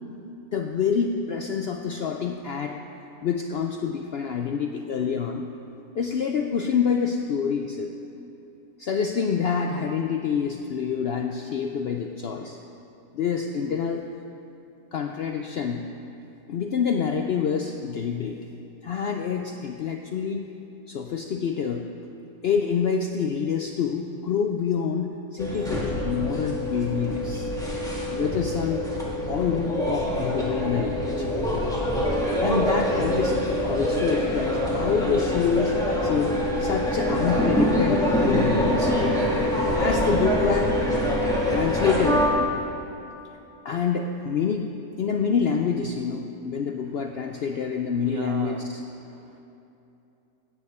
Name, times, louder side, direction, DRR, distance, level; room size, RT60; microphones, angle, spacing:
voice 1, 0.5-2.8 3.2-5.4 5.9-7.9 8.8-12.6 13.1-14.1 14.9-15.9 16.5-18.4 18.8-20.5 20.9-21.9 22.4-27.5 28.1-28.8 29.3-31.3 32.4-39.0 39.7-40.8 41.5-42.3 43.6-48.8, left 6 dB, 70° left, 4 dB, 0.5 m, -27 dB
sound 1, 25.4-42.3, equal, ahead, 1.7 m, -25 dB
voice 2, 48.0-48.7 49.0-49.4, right 5 dB, 75° right, 4 dB, 0.5 m, -38 dB
14.5 x 9.0 x 4.3 m, 2.9 s
omnidirectional pair, 1.6 m